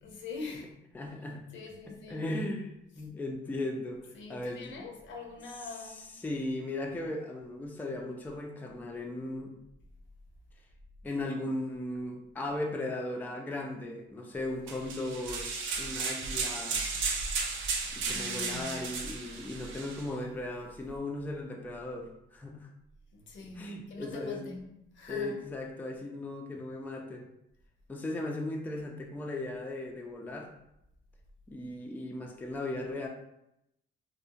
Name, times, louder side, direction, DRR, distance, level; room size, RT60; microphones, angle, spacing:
voice 1, 0.0-0.7 1.5-2.2 4.1-6.2 18.1-18.8 23.1-25.3, left 3 dB, 70° left, 0.6 m, -43 dB
voice 2, 0.9-1.4 1.9-4.9 5.6-9.5 11.0-16.8 17.9-22.7 23.6-24.5 25.1-27.3 27.9-30.5 31.5-33.1, left 2 dB, 10° left, 0.3 m, -37 dB
sound 1, 14.7-20.1, right 4 dB, 75° right, 0.5 m, -34 dB
2.4 x 2.1 x 2.7 m
cardioid pair, 90°, 20 cm